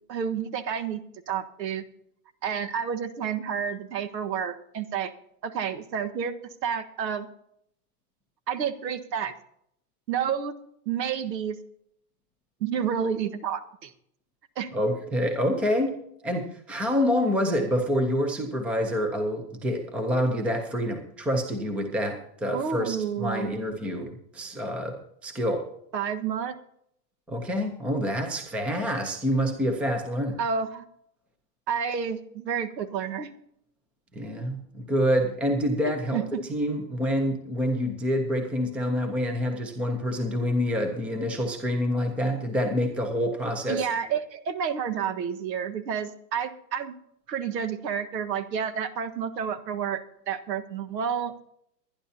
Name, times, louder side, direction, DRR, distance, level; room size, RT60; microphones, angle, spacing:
voice 1, 0.1-1.8 2.4-5.1 5.4-6.4 6.6-7.3 8.5-9.3 10.1-10.6 10.8-11.6 12.6-13.9 14.6-14.7 22.5-23.6 25.9-26.6 30.4-30.8 31.7-33.3 36.1-36.4 43.7-46.9 47.3-50.0 50.3-51.3, right 7 dB, 80° right, 9 dB, 1.5 m, -30 dB
voice 2, 14.7-16.0 16.2-25.6 27.3-30.4 34.1-36.2 36.5-43.9, equal, 5° right, 5 dB, 0.5 m, -27 dB
23.0 x 10.5 x 2.8 m, 0.72 s
hypercardioid pair, 150°, 50 cm